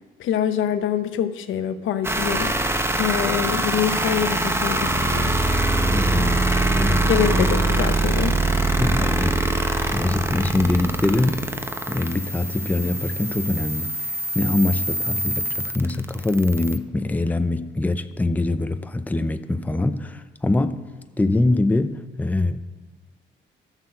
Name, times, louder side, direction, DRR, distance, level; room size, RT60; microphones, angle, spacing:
voice 1, 0.2-2.5 3.0-5.4 7.1-8.3, left 9 dB, 80° left, 0.9 m, -25 dB
sound 1, 2.0-16.8, right 2 dB, 10° right, 1.0 m, -23 dB
voice 2, 5.9-6.4 6.8-7.5 8.8-11.4 11.9-13.9 14.3-20.8 21.2-22.6, left 2 dB, 10° left, 0.5 m, -23 dB
12.5 x 6.5 x 7.6 m
cardioid pair, 90°, 20 cm